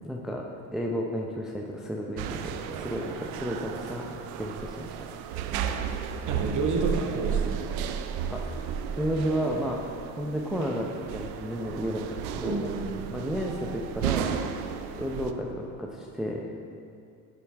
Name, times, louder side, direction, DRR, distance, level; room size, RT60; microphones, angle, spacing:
voice 1, 0.0-0.5 0.7-5.0 8.3-8.7 8.9-9.8 10.2-12.7 13.1-14.4 15.0-16.5, equal, ahead, -1 dB, 0.6 m, -32 dB
sound 1, 2.2-15.3, right 8 dB, 80° right, 0.6 m, -33 dB
voice 2, 5.4-5.8 6.3-7.6 12.4-13.1, right 3 dB, 40° right, 2 dB, 1.3 m, -30 dB
11.5 x 5.1 x 3.5 m, 2.5 s
hypercardioid pair, 70°, 46 cm